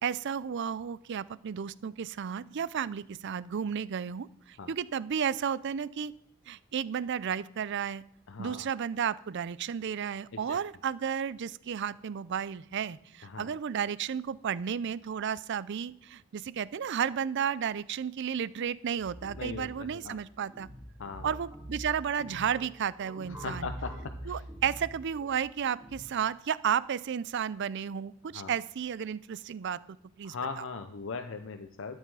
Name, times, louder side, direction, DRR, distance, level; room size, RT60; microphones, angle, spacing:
voice 1, 0.0-6.1 6.5-8.0 8.4-20.7 21.2-23.7 24.3-30.6, right 8 dB, 60° right, 19 dB, 0.4 m, -33 dB
voice 2, 8.3-8.7 10.5-10.6 13.2-13.5 19.4-20.2 21.0-21.3 23.4-24.4 28.3-28.5 30.2-32.0, left 4 dB, 65° left, 7 dB, 0.7 m, -39 dB
sound 1, 19.0-26.0, right 1 dB, 15° right, 2.8 m, -45 dB
13.0 x 8.2 x 4.8 m, 0.70 s
head